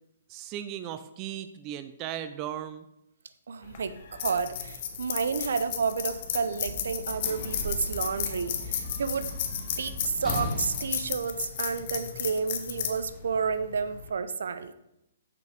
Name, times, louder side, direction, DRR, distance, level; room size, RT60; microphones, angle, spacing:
voice 1, 0.3-2.9, right 10 dB, 25° right, 10 dB, 0.4 m, -37 dB
voice 2, 3.5-9.3 9.8-14.7, right 5 dB, 75° right, 12 dB, 0.6 m, -31 dB
sound 1, 3.6-14.1, left 8 dB, 40° left, 0.9 m, -34 dB
sound 2, 6.6-10.9, right 4 dB, 60° right, 1.2 m, -47 dB
Sliding door / Slam, 6.8-12.2 13.1-13.2, equal, 5° left, 1.7 m, -38 dB
6.7 x 5.1 x 5.0 m, 0.84 s
hypercardioid pair, 160°, 0 cm